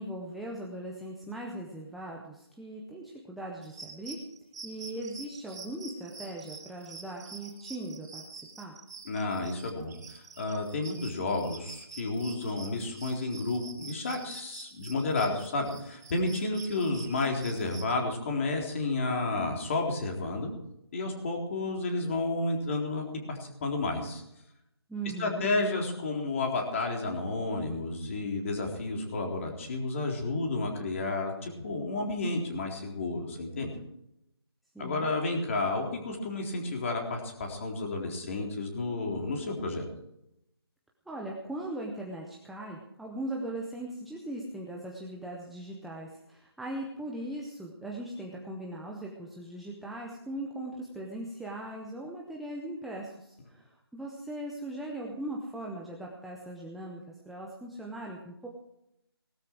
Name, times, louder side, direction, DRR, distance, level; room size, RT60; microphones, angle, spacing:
voice 1, 0.0-4.2 4.6-8.2 8.6-8.8 24.9-25.5 34.7-35.1 41.1-58.5, right 1 dB, ahead, -2 dB, 0.5 m, -39 dB
sound 1, 3.6-17.9, right 4 dB, 40° right, 3.2 m, -47 dB
voice 2, 9.1-20.5 20.9-24.2 25.2-33.7 34.8-39.9, left 2 dB, 30° left, 1 dB, 3.8 m, -31 dB
19.0 x 13.0 x 4.7 m, 0.79 s
figure-of-eight pair, 165°, 14 cm